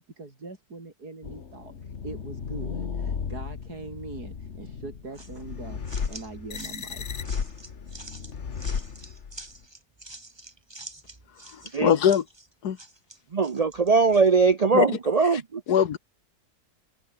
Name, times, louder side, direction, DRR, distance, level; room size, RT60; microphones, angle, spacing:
voice 1, 0.0-5.8 6.1-7.2, right 3 dB, 85° right, 5.1 m, -42 dB
sound 1, 1.2-9.6, left 6 dB, 50° left, 1.7 m, -35 dB
sound 2, 5.1-14.3, right 2 dB, 15° right, 1.7 m, -47 dB
voice 2, 11.5-12.2 12.6-12.8 14.7-14.9 15.7-16.0, left 9 dB, 85° left, 1.8 m, -21 dB
voice 3, 13.3-15.6, right 4 dB, 55° right, 0.4 m, -21 dB
omnidirectional pair, 1.6 m